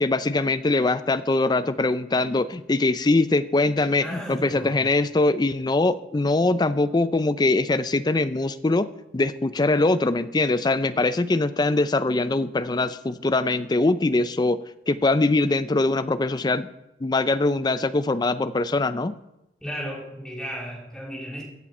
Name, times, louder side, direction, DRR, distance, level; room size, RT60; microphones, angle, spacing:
voice 1, 0.0-8.9 9.1-16.7 17.0-19.2, left 2 dB, 25° left, 14 dB, 0.4 m, -22 dB
voice 2, 4.0-4.8 10.9-11.0 19.6-21.4, equal, 5° left, -4 dB, 3.4 m, -34 dB
15.0 x 7.4 x 4.3 m, 0.90 s
head